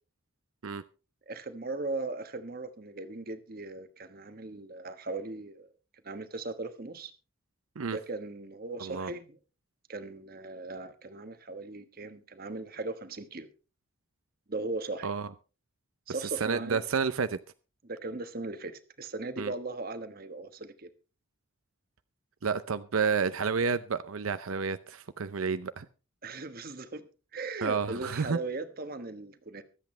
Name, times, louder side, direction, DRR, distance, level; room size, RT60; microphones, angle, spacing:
voice 1, 1.3-5.7 6.0-7.1 7.9-9.4 9.9-13.5 14.5-15.1 16.1-16.8 17.8-20.9 26.2-27.0 27.3-29.6, right 2 dB, 45° right, 1.2 m, -38 dB
voice 2, 8.8-9.1 15.0-15.3 16.4-17.4 19.4-19.5 22.4-25.9 27.6-28.4, right 5 dB, 85° right, 0.6 m, -30 dB
24.0 x 8.3 x 3.2 m
head